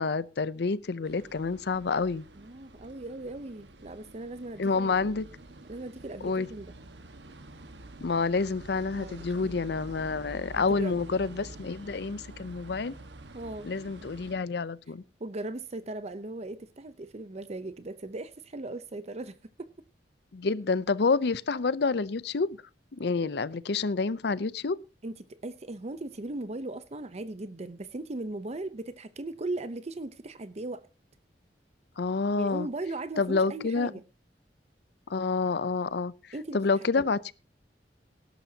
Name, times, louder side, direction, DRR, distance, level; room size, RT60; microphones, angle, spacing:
voice 1, 0.0-2.3 4.6-5.3 6.2-6.5 8.0-12.9 13.6-15.0 20.3-22.6 22.9-24.8 32.0-32.7 33.2-33.9 35.1-36.1 36.5-37.3, left 4 dB, 65° left, 0.6 m, -28 dB
sound 1, 1.0-14.4, right 2 dB, 80° right, 1.4 m, -48 dB
voice 2, 2.3-5.0 5.7-6.7 9.0-9.5 10.6-11.0 13.3-13.7 15.2-19.7 25.0-30.8 32.4-34.0 36.3-36.6 37.0-37.1, right 2 dB, 40° right, 0.7 m, -38 dB
18.0 x 11.5 x 2.8 m
head